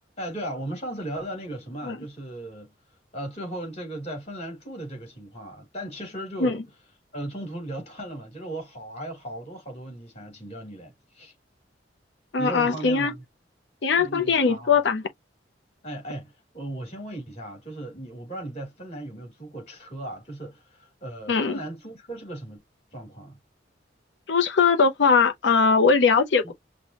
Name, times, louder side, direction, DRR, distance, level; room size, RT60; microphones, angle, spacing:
voice 1, 0.2-2.7 3.1-6.6 7.1-11.3 12.4-13.2 13.9-14.7 15.8-22.6 22.9-23.4 26.4-26.5, right 1 dB, 35° left, 3.1 m, -37 dB
voice 2, 12.3-13.1 13.8-15.0 21.3-21.6 24.3-26.5, left 5 dB, 70° left, 0.6 m, -20 dB
5.9 x 2.2 x 2.9 m
head